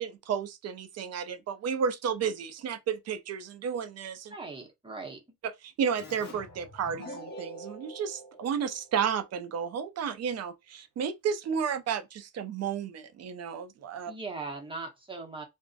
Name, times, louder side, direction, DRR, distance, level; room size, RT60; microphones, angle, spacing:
voice 1, 0.0-4.3 5.4-14.1, right 7 dB, 45° right, 0.4 m, -32 dB
voice 2, 4.3-5.2 14.1-15.4, right 3 dB, 15° right, 0.7 m, -39 dB
Keyboard (musical), 6.0-9.3, equal, 30° left, 0.8 m, -45 dB
2.5 x 2.0 x 2.4 m
cardioid pair, 130°, 36 cm